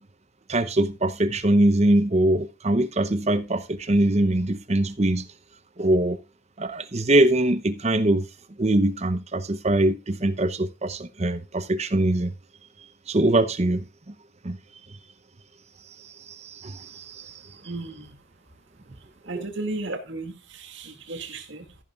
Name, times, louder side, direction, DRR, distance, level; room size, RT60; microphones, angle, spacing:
voice 1, 0.5-5.3 5.8-6.2 6.6-8.3 8.6-12.3 13.1-14.1 14.4-14.6 16.0-17.4, right 1 dB, 30° right, 0.7 m, -23 dB
voice 2, 17.5-18.1 18.9-21.8, right 2 dB, 55° right, 2.2 m, -35 dB
14.0 x 11.0 x 2.4 m
head